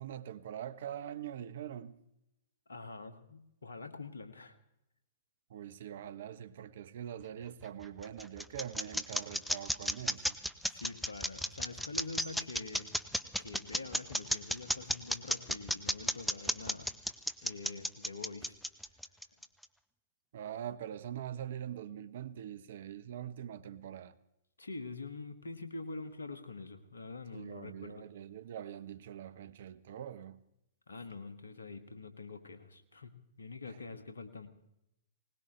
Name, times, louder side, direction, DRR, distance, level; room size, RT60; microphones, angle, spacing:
voice 1, 0.0-2.0 5.5-10.4 20.3-24.1 27.3-30.4 33.7-33.8, right 10 dB, 60° right, 0.8 m, -43 dB
voice 2, 2.7-4.5 10.7-12.9 13.4-17.1 17.4-18.6 24.6-28.1 30.9-33.1 33.4-34.5, left 3 dB, 80° left, 1.7 m, -45 dB
sound 1, 7.6-19.6, equal, ahead, 0.7 m, -33 dB
20.5 x 19.5 x 3.1 m
figure-of-eight pair, 110°, 0 cm